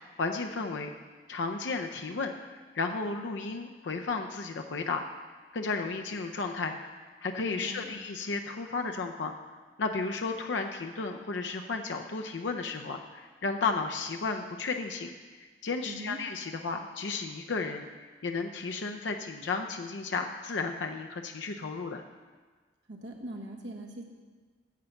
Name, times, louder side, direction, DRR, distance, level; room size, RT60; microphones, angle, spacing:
voice 1, 0.2-0.9 1.3-5.1 5.5-6.8 7.2-9.3 9.8-15.1 15.4-17.9 18.2-22.0, left 4 dB, 90° left, 4 dB, 0.6 m, -33 dB
voice 2, 7.5-7.9 15.8-16.2 22.9-24.0, right 1 dB, 80° right, 0 dB, 1.4 m, -41 dB
9.4 x 7.8 x 5.8 m, 1.4 s
head